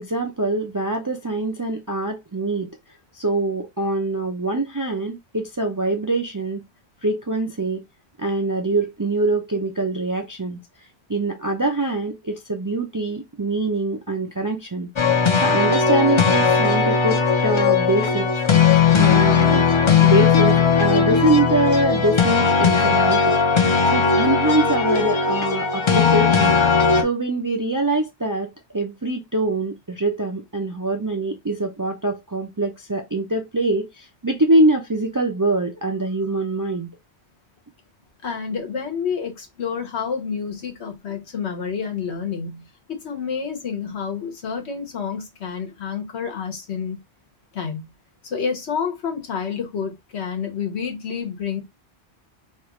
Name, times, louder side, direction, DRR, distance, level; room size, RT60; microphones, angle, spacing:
voice 1, 0.0-2.7 3.2-6.6 7.0-7.8 8.2-10.6 11.1-14.9 15.3-18.3 19.0-19.7 20.0-23.4 23.9-26.6 26.9-36.9, right 2 dB, 35° right, 0.3 m, -24 dB
sound 1, 15.0-27.0, left 5 dB, 35° left, 0.5 m, -18 dB
voice 2, 38.2-47.0 47.5-47.9 48.2-51.6, left 6 dB, 90° left, 1.3 m, -29 dB
3.1 x 2.4 x 3.0 m
omnidirectional pair, 1.1 m